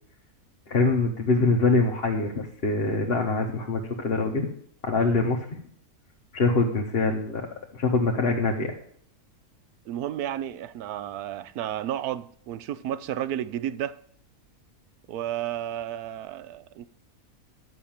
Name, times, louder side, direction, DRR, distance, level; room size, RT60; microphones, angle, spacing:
voice 1, 0.7-4.5 4.8-5.6 6.3-7.5 7.7-8.7, left 3 dB, 45° left, 1.2 m, -24 dB
voice 2, 9.9-14.0 15.1-16.9, right 11 dB, 90° right, 1.2 m, -32 dB
11.0 x 5.9 x 8.8 m
omnidirectional pair, 1.6 m